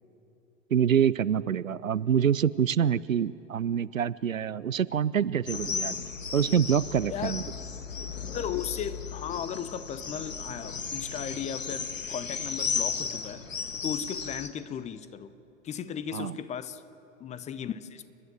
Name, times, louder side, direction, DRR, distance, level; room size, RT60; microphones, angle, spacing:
voice 1, 0.7-6.0 6.3-7.4 16.1-16.4, right 8 dB, 85° right, 19 dB, 0.5 m, -26 dB
sound 1, 5.5-14.5, left 5 dB, 80° left, 1.2 m, -35 dB
voice 2, 8.3-15.3 15.6-16.8 17.2-18.0, left 8 dB, 20° left, 14 dB, 0.7 m, -36 dB
29.5 x 11.5 x 7.6 m, 3.0 s
figure-of-eight pair, 95°, 39 cm